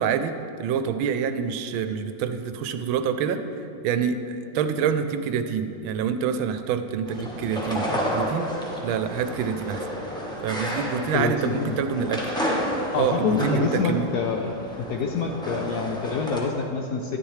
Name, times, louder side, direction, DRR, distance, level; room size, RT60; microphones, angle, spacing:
voice 1, 0.0-3.4 3.8-8.5 8.8-9.8 10.4-12.3 12.9-14.1, right 7 dB, 85° right, 9 dB, 1.4 m, -26 dB
sound 1, 7.1-16.4, equal, 5° left, 0.5 m, -31 dB
voice 2, 11.1-11.8 12.9-14.5 14.8-17.2, left 5 dB, 70° left, 2 dB, 1.0 m, -26 dB
11.0 x 10.0 x 3.2 m, 2.7 s
omnidirectional pair, 2.2 m